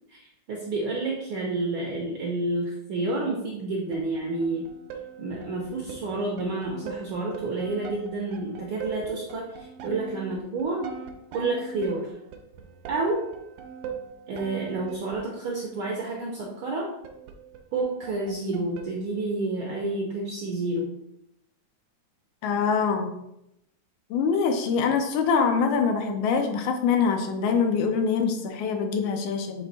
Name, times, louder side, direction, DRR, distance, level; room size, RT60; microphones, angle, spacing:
voice 1, 0.1-4.7 5.2-10.9 11.3-12.2 12.9-13.3 14.3-16.9 17.7-20.9, right 2 dB, 75° right, -2 dB, 1.2 m, -29 dB
sound 1, 3.9-19.5, right 5 dB, 90° right, 2.1 m, -42 dB
voice 2, 22.4-23.1 24.1-29.7, left 5 dB, 80° left, 5 dB, 2.1 m, -24 dB
7.2 x 3.3 x 4.1 m, 0.82 s
omnidirectional pair, 3.4 m